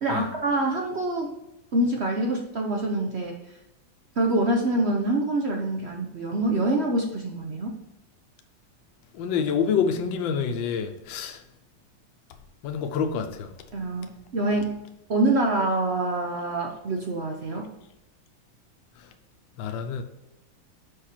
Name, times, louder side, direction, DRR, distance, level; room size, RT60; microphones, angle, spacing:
voice 1, 0.0-1.3 1.7-3.4 4.2-7.8 13.7-14.8 15.1-17.7, right 2 dB, 70° right, 0.6 m, -25 dB
voice 2, 9.1-11.4 12.6-13.5 19.6-20.0, left 6 dB, 75° left, 1.4 m, -27 dB
6.6 x 5.7 x 4.4 m
omnidirectional pair, 2.2 m